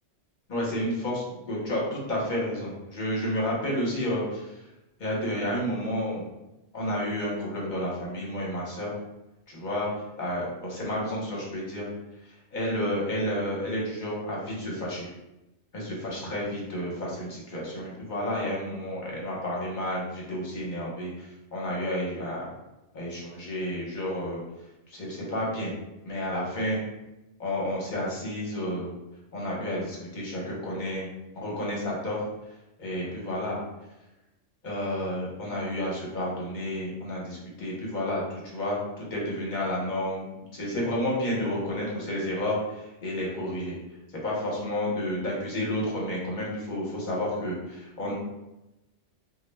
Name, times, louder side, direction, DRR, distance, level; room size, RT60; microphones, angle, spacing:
voice 1, 0.5-4.6 5.0-6.2 6.7-8.9 9.5-11.9 12.5-15.1 15.7-22.5 22.9-24.4 24.9-25.7 26.0-26.8 27.4-28.9 29.3-31.1 31.4-32.2 32.8-33.6 34.6-43.7 44.2-48.1, left 1 dB, 45° left, -4 dB, 0.8 m, -31 dB
2.2 x 2.0 x 3.2 m, 0.96 s
omnidirectional pair, 1.2 m